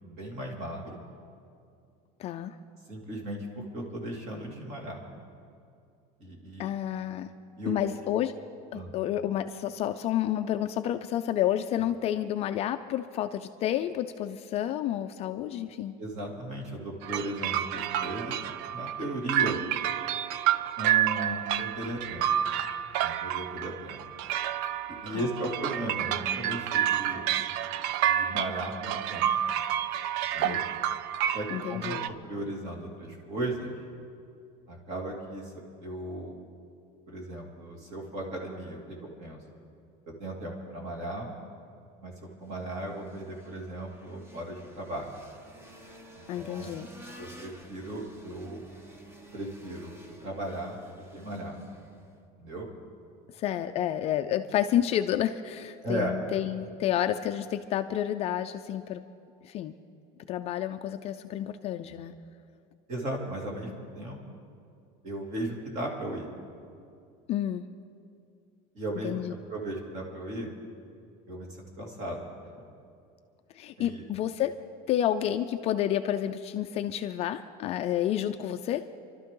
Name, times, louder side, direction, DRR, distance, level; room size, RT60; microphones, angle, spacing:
voice 1, 0.0-1.0 2.9-5.0 6.2-6.7 7.6-7.7 8.7-8.9 16.0-18.5 18.7-19.6 20.8-22.3 23.0-24.0 25.0-27.3 28.0-29.3 30.3-30.6 31.3-33.7 34.7-35.5 35.8-36.4 37.1-39.4 40.1-41.3 42.0-45.1 46.2-46.7 47.2-48.6 49.3-49.9 50.2-50.8 51.1-51.6 52.4-52.7 55.8-56.2 61.9-62.0 62.9-64.2 65.0-66.3 68.7-70.5 71.3-72.3 73.8-74.0, right 1 dB, 35° right, 0 dB, 2.6 m, -36 dB
voice 2, 2.2-2.6 6.6-7.3 7.7-8.3 8.7-15.9 25.1-25.3 30.4-30.6 31.5-32.1 46.3-46.9 53.3-59.0 59.4-59.8 60.3-62.1 67.3-67.6 69.0-69.3 73.5-74.6 74.9-78.9, left 11 dB, 35° left, 8 dB, 0.4 m, -30 dB
sound 1, 17.0-32.1, right 11 dB, 60° right, 0.5 m, -29 dB
sound 2, 42.4-52.2, equal, 15° right, 0.8 m, -52 dB
27.5 x 12.5 x 3.8 m, 2.5 s
cardioid pair, 170°, 19 cm